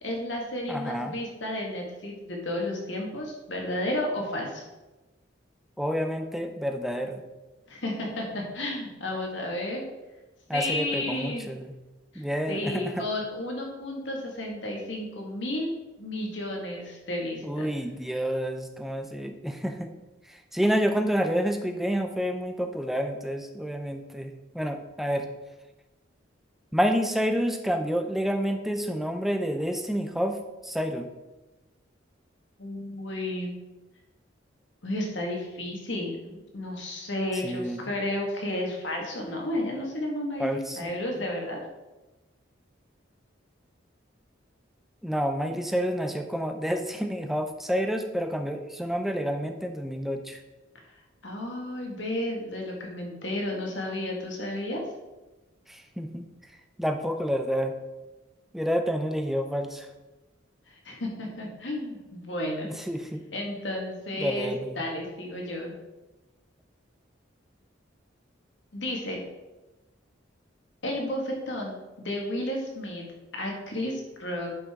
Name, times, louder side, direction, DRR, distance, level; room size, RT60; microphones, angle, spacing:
voice 1, 0.0-4.6 7.7-9.8 10.5-11.5 12.1-12.2 12.5-15.7 16.0-17.7 32.6-33.5 34.8-41.6 51.2-54.8 60.7-62.7 63.3-65.7 68.7-69.2 70.8-73.0 73.3-74.5, left 1 dB, 70° left, 0 dB, 1.9 m, -32 dB
voice 2, 0.7-1.1 5.8-7.2 10.5-11.7 12.1-13.1 17.4-19.9 20.3-25.3 26.7-30.4 30.6-31.1 37.4-37.8 40.4-40.9 45.0-50.4 55.7-56.2 56.8-57.7 58.5-59.9 62.6-63.2 64.2-64.8, equal, ahead, 6 dB, 0.6 m, -29 dB
10.5 x 5.6 x 3.7 m, 1.1 s
head